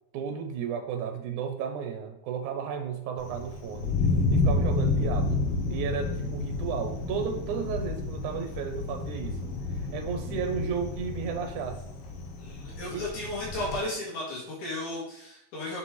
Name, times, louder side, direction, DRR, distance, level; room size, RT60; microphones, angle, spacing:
voice 1, 0.1-4.0 4.3-5.4 5.7-9.4 9.9-11.8 12.9-13.1, right 7 dB, 85° right, 5 dB, 2.3 m, -33 dB
Thunder, 3.2-13.8, left 3 dB, 60° left, 1.7 m, -30 dB
voice 2, 12.4-15.8, left 1 dB, 80° left, -4 dB, 3.3 m, -34 dB
6.9 x 6.7 x 3.2 m, 0.83 s
omnidirectional pair, 3.4 m